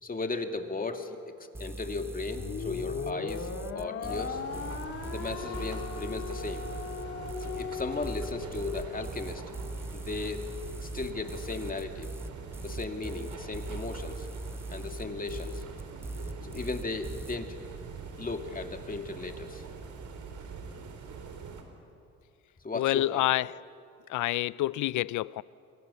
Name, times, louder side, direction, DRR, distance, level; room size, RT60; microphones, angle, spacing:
voice 1, 0.0-4.4 5.1-6.7 7.4-9.4 9.9-10.5 10.8-12.1 12.6-14.3 14.7-15.6 16.4-17.6 18.2-19.6 22.6-23.3, left 3 dB, 30° left, 2.4 m, -36 dB
sound 1, 1.5-17.4, right 1 dB, 10° right, 0.8 m, -40 dB
sound 2, 2.4-8.9, left 6 dB, 50° left, 2.1 m, -38 dB
sound 3, 4.1-21.6, right 5 dB, 70° right, 3.8 m, -43 dB
voice 2, 22.7-23.5 24.1-25.4, left 15 dB, 80° left, 0.6 m, -28 dB
28.5 x 24.5 x 7.0 m
cardioid pair, 90°, 30 cm